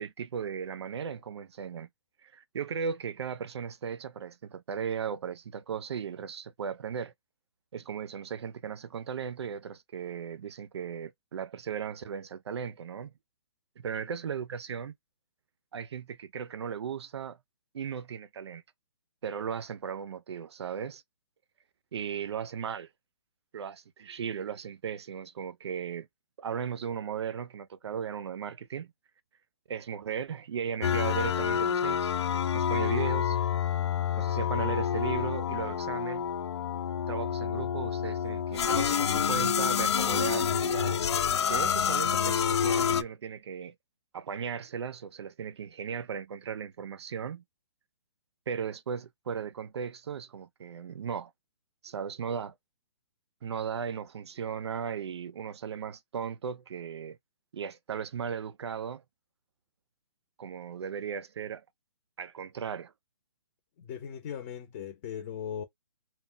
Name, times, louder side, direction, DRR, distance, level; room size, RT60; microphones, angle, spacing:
voice 1, 0.0-1.9 2.2-7.1 7.7-13.1 13.8-14.9 15.7-17.4 17.7-18.6 19.2-21.0 21.9-22.9 23.5-26.1 26.4-28.9 29.7-32.1 32.5-33.4 34.2-36.3 37.1-41.0 41.5-43.7 44.1-47.4 48.5-51.3 51.8-52.5 53.4-57.2 57.5-59.0 60.4-61.6 62.2-62.9, right 7 dB, 75° right, 0.4 m, -36 dB
sound 1, 30.8-43.0, left 8 dB, 75° left, 0.4 m, -28 dB
voice 2, 63.8-65.6, left 8 dB, 30° left, 0.7 m, -38 dB
2.2 x 2.1 x 3.7 m
hypercardioid pair, 155°, 14 cm